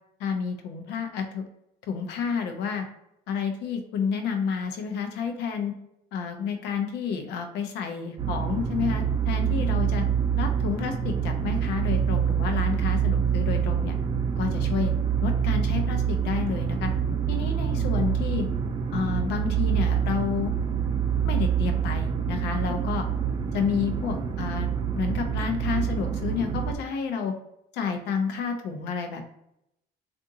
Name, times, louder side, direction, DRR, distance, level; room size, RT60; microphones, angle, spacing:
voice 1, 0.2-1.4 1.9-2.8 3.3-5.7 6.1-10.0 10.4-14.0 14.4-14.9 15.2-16.9 17.3-18.5 18.9-20.5 21.2-23.1 23.5-24.7 24.9-27.3 27.7-29.2, left 6 dB, 85° left, 5 dB, 0.6 m, -30 dB
sound 1, 8.2-26.7, right 8 dB, 30° right, 0.5 m, -26 dB
3.5 x 2.6 x 2.7 m, 0.80 s
cardioid pair, 110°, 17 cm